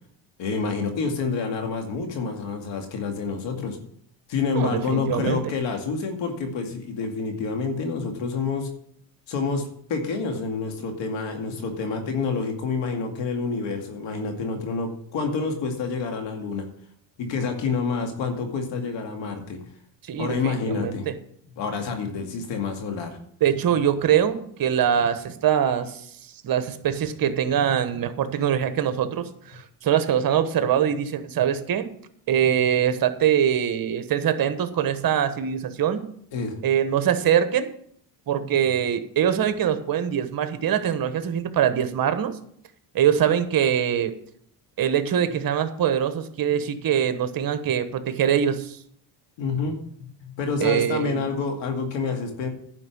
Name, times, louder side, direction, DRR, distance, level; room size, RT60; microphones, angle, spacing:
voice 1, 0.4-3.8 4.3-8.7 9.3-9.6 9.9-16.7 17.2-19.6 20.2-21.1 21.6-23.2 36.3-36.6 49.4-52.5, left 4 dB, 75° left, 4 dB, 2.4 m, -28 dB
voice 2, 4.5-5.4 20.0-21.1 23.4-26.0 26.4-31.8 32.3-36.0 36.6-37.7 38.3-42.4 42.9-44.1 44.8-48.8 50.6-51.3, right 9 dB, 50° right, 10 dB, 1.3 m, -23 dB
11.0 x 5.3 x 8.4 m, 0.67 s
cardioid pair, 100°, 44 cm